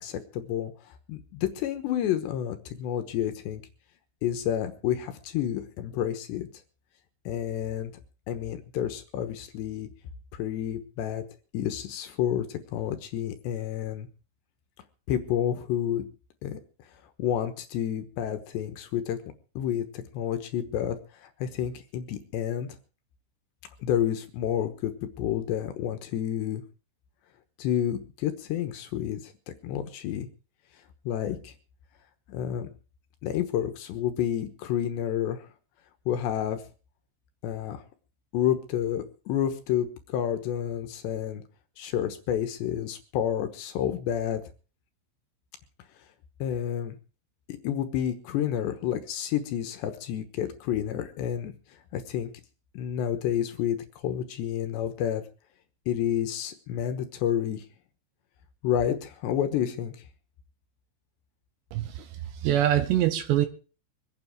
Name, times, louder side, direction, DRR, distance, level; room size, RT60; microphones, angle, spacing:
voice 1, 0.0-3.6 4.2-6.5 7.3-7.9 8.3-9.9 10.3-11.2 11.5-14.1 15.1-16.1 16.4-16.6 17.2-19.2 19.6-22.7 23.8-26.6 27.6-29.3 29.6-30.3 31.1-31.5 32.3-32.7 33.2-35.5 36.1-36.6 37.4-37.8 38.3-41.4 41.8-44.4 46.4-47.0 47.5-51.5 51.9-52.3 52.7-55.2 55.9-57.7 58.6-60.0, left 10 dB, 70° left, 3.1 m, -30 dB
voice 2, 62.4-63.5, right 12 dB, 75° right, 2.8 m, -23 dB
24.0 x 9.7 x 4.7 m
omnidirectional pair, 5.8 m